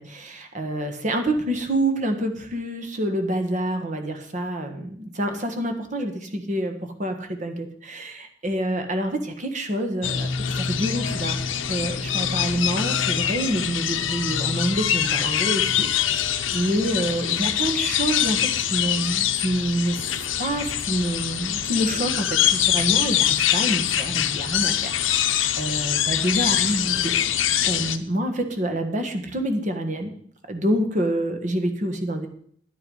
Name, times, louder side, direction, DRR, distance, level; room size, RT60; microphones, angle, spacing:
voice 1, 0.0-10.3 10.5-11.4 11.7-18.4 18.7-20.0 20.2-27.1 27.7-30.1 30.5-32.3, right 1 dB, 40° right, 6 dB, 1.4 m, -27 dB
sound 1, 10.0-28.0, left 10 dB, 80° left, 0.8 m, -24 dB
10.5 x 9.4 x 5.4 m, 0.63 s
head